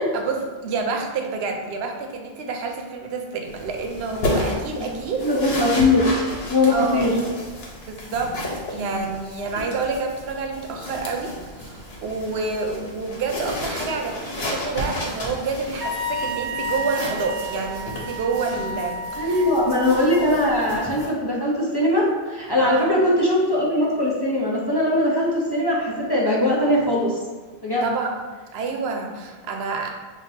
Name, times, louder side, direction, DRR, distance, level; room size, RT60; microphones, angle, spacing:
voice 1, 0.1-5.2 6.7-7.1 7.8-8.3 8.7-19.3 22.6-22.9 27.8-28.2 28.5-29.9, right 4 dB, 85° right, 3 dB, 0.8 m, -28 dB
sound 1, 3.4-21.1, left 1 dB, 80° left, 1.1 m, -33 dB
voice 2, 5.2-6.2 6.5-7.1 19.2-27.2 27.6-27.9, left 1 dB, 30° left, -5 dB, 0.6 m, -20 dB
Wind instrument woodwind instrument, 15.8-20.2, right 1 dB, 40° right, 0.3 m, -31 dB
5.7 x 2.5 x 2.7 m, 1.4 s
omnidirectional pair, 1.0 m